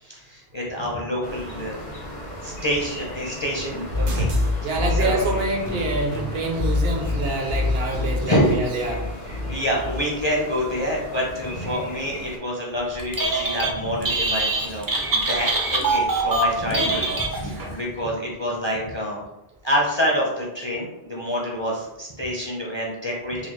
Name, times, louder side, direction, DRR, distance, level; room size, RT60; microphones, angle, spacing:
voice 1, 0.0-1.7 2.4-4.3 4.6-4.7 4.9-5.2 8.1-8.5 9.3-19.2 19.6-23.5, equal, 35° left, -3 dB, 0.5 m, -27 dB
sound 1, 1.2-12.4, equal, 65° left, 1.2 m, -37 dB
sound 2, 3.9-10.0, left 2 dB, 85° right, 1.1 m, -26 dB
voice 2, 4.6-9.1 14.7-14.8 16.7-16.8, right 2 dB, 70° right, 2 dB, 0.8 m, -26 dB
Telephone, 13.0-13.7 14.0-17.7, right 2 dB, 35° right, 0.3 m, -23 dB
4.1 x 2.3 x 3.0 m, 0.91 s
omnidirectional pair, 1.1 m